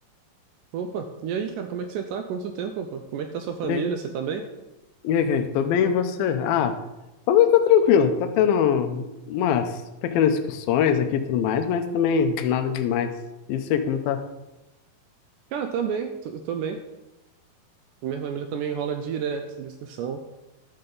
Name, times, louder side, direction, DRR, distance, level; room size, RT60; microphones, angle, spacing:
voice 1, 0.7-4.4 15.5-16.8 18.0-20.2, right 7 dB, 80° right, 6 dB, 1.9 m, -30 dB
voice 2, 5.0-6.7 7.3-9.7 10.0-13.1 13.5-14.2, left 8 dB, 80° left, 8 dB, 2.5 m, -22 dB
11.5 x 6.7 x 3.9 m, 0.99 s
omnidirectional pair, 4.2 m